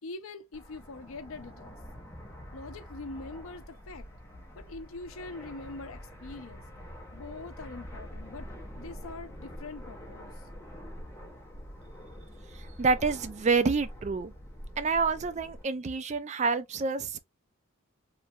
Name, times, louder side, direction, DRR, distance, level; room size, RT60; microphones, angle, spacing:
voice 1, 0.0-1.8 2.5-4.1 4.5-6.6 7.1-8.5 8.8-10.4, left 3 dB, 70° left, 0.5 m, -43 dB
Fixed-wing aircraft airplane, 0.5-15.6, equal, 10° left, 0.8 m, -45 dB
voice 2, 12.5-14.3 14.8-17.2, right 4 dB, 35° right, 0.3 m, -28 dB
3.2 x 2.3 x 2.7 m
head